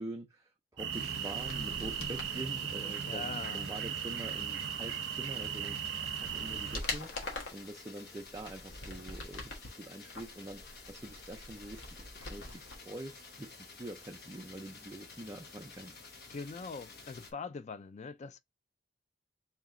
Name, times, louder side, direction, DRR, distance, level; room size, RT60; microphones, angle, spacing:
voice 1, 0.0-5.8 6.1-7.1 7.5-16.0, right 1 dB, 20° right, 0.5 m, -45 dB
sound 1, 0.8-6.8, right 8 dB, 70° right, 0.6 m, -37 dB
sound 2, 0.9-17.3, left 4 dB, 55° left, 1.2 m, -52 dB
sound 3, 1.4-2.3 5.4-5.5 6.0-7.7 8.2-9.7 10.1-12.8 13.0-13.1, left 3 dB, 75° left, 1.2 m, -43 dB
voice 2, 3.1-3.7 16.3-18.4, left 4 dB, 40° left, 0.4 m, -42 dB
3.2 x 3.0 x 3.6 m
head